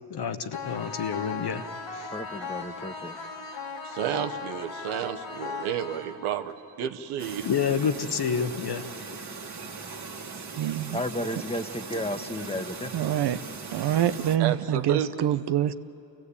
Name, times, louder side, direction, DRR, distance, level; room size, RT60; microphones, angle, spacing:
voice 1, 0.1-1.6 1.9-2.1 7.4-8.9, left 6 dB, 50° left, 9 dB, 1.4 m, -28 dB
sound 1, 0.5-6.5, left 4 dB, 70° left, 3.1 m, -37 dB
voice 2, 2.1-3.2 10.9-12.9, left 1 dB, 10° left, 8 dB, 1.4 m, -33 dB
voice 3, 3.8-7.5 14.4-15.3, right 10 dB, 80° right, 7 dB, 1.2 m, -31 dB
Chirp tweet, 7.2-14.4, right 4 dB, 35° right, 2.0 m, -39 dB
voice 4, 10.6-11.0 12.9-13.4 13.7-15.7, right 11 dB, 55° right, 11 dB, 0.9 m, -25 dB
28.0 x 16.5 x 8.4 m, 2.8 s
supercardioid pair, 60°, 50 cm